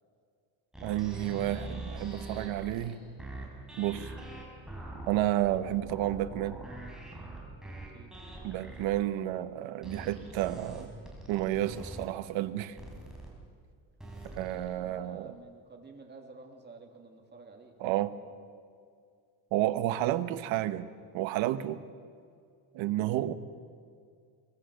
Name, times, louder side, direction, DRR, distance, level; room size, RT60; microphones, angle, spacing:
sound 1, 0.7-8.9 9.8-12.0 12.8-13.3 14.0-14.7, right 2 dB, ahead, 4.9 m, -43 dB
voice 1, 0.8-3.0 3.8-4.1 5.1-6.6 8.4-10.9 11.3-12.8 14.2-15.3 17.8-18.1 19.5-21.8 22.7-23.3, right 14 dB, 80° right, 11 dB, 1.2 m, -31 dB
voice 2, 14.6-17.7, right 3 dB, 20° right, 3 dB, 2.9 m, -51 dB
22.5 x 21.5 x 6.5 m, 2.2 s
cardioid pair, 145°, 46 cm